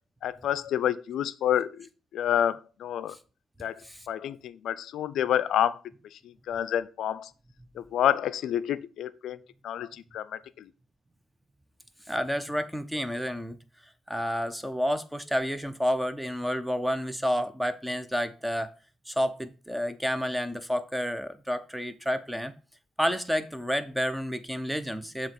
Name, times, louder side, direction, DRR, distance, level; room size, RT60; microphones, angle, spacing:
voice 1, 0.2-3.2 3.6-3.8 4.1-5.8 6.1-7.3 7.8-9.4 9.6-10.7, left 10 dB, 75° left, 0.4 m, -29 dB
voice 2, 12.1-13.6 14.1-18.7 19.1-22.5 23.0-25.3, equal, 5° right, 0.7 m, -30 dB
7.3 x 3.0 x 6.0 m
cardioid pair, 90°, 0 cm